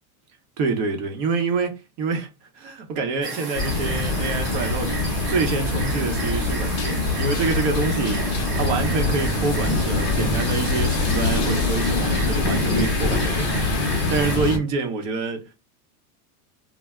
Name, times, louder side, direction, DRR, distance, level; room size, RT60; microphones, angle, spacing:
voice 1, 0.6-2.3 2.5-5.0 5.3-8.3 8.5-15.5, right 4 dB, 55° right, 0.8 m, -27 dB
sound 1, 3.2-14.4, right 4 dB, 25° right, 0.7 m, -34 dB
sound 2, 3.5-14.6, left 3 dB, 40° left, 0.6 m, -24 dB
2.1 x 2.1 x 3.4 m
supercardioid pair, 145°, 44 cm